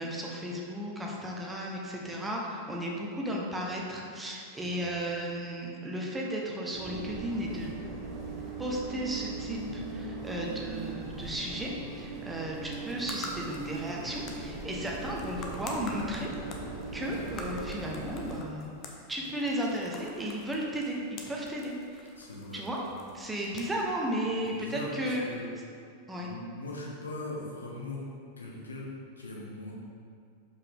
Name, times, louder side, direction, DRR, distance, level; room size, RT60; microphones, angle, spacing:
voice 1, 0.0-7.7 8.6-16.3 16.9-21.0 21.3-22.1 22.5-22.8 23.1-25.3 26.1-26.3, equal, 10° right, -2 dB, 1.0 m, -34 dB
sound 1, 6.7-18.4, right 3 dB, 35° right, 1.3 m, -39 dB
sound 2, 12.6-25.1, left 3 dB, 35° left, 0.8 m, -48 dB
voice 2, 22.2-22.6 24.4-25.5 26.2-28.0 28.4-28.9 29.2-29.7, left 2 dB, 75° left, -3 dB, 1.2 m, -40 dB
6.8 x 5.3 x 3.7 m, 2.3 s
figure-of-eight pair, 90°, 0 cm